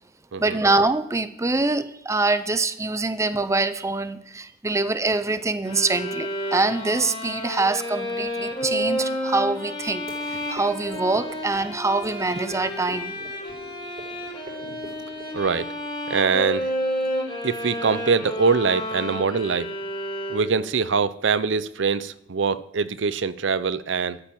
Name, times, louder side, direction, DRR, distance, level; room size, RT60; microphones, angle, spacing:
voice 1, 0.4-13.1, right 3 dB, 15° right, 0.6 m, -24 dB
sound 1, 5.6-20.8, equal, 25° left, 3.8 m, -31 dB
sound 2, 9.8-15.9, equal, 40° right, 5.7 m, -45 dB
voice 2, 15.3-15.7 16.1-16.7 17.4-19.7 20.3-24.2, right 5 dB, 70° right, 0.6 m, -23 dB
13.0 x 10.0 x 7.6 m
head